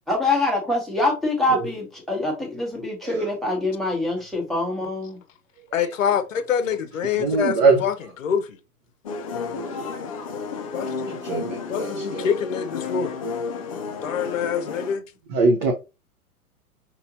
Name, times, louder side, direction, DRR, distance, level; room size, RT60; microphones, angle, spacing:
voice 1, 0.1-5.2, left 2 dB, ahead, 1.0 m, -25 dB
voice 2, 5.7-7.9 8.2-8.6 10.7-11.2 11.7-13.2 14.0-15.0, left 7 dB, 60° left, 0.8 m, -25 dB
voice 3, 7.2-7.8 11.1-12.2 15.3-15.7, right 4 dB, 30° right, 0.7 m, -22 dB
sound 1, 9.0-15.0, left 4 dB, 25° left, 0.4 m, -32 dB
5.4 x 3.0 x 2.6 m
figure-of-eight pair, 110°, 45 cm